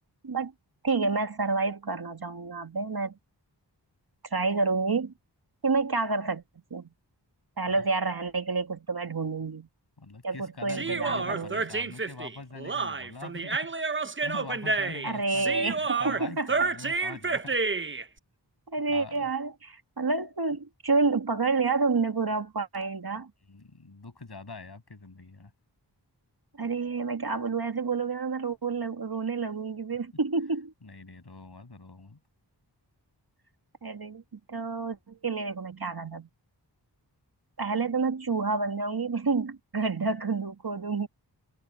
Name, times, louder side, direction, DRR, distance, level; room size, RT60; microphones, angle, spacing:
voice 1, 0.8-3.2 4.3-5.1 5.6-6.4 6.7-6.9 7.6-9.7 10.2-11.7 15.0-16.5 18.7-23.3 26.6-30.7 33.8-34.2 34.5-36.3 37.6-41.1, right 4 dB, 55° right, 1.7 m, -29 dB
voice 2, 10.0-17.6 18.9-19.3 23.5-25.5 30.8-32.2, left 3 dB, 65° left, 7.1 m, -44 dB
Human voice, 10.7-18.0, right 4 dB, 30° right, 0.8 m, -30 dB
wide cardioid pair, 60°, 43 cm